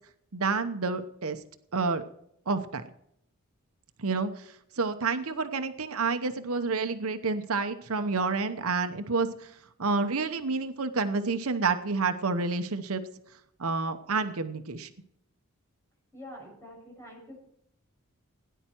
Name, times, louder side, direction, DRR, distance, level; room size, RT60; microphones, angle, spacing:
voice 1, 0.3-1.4 1.7-2.0 2.5-2.8 4.0-4.5 4.8-9.5 9.8-13.0 13.6-14.9, right 4 dB, 75° right, 8 dB, 0.9 m, -29 dB
voice 2, 16.1-17.4, left 1 dB, 15° left, -2 dB, 7.0 m, -46 dB
17.5 x 10.0 x 4.5 m, 0.74 s
head